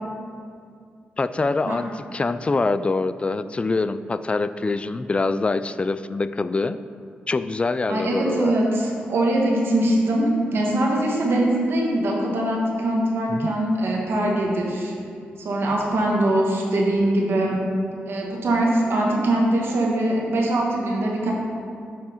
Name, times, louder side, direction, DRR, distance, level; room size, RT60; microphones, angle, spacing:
voice 1, 1.2-6.8 7.3-8.6 13.3-13.5, left 3 dB, 30° left, 13 dB, 0.3 m, -24 dB
voice 2, 7.9-14.9 15.4-17.5 18.1-21.3, right 1 dB, 70° right, -1 dB, 1.4 m, -22 dB
10.5 x 3.5 x 4.4 m, 2.3 s
cardioid pair, 55°, 4 cm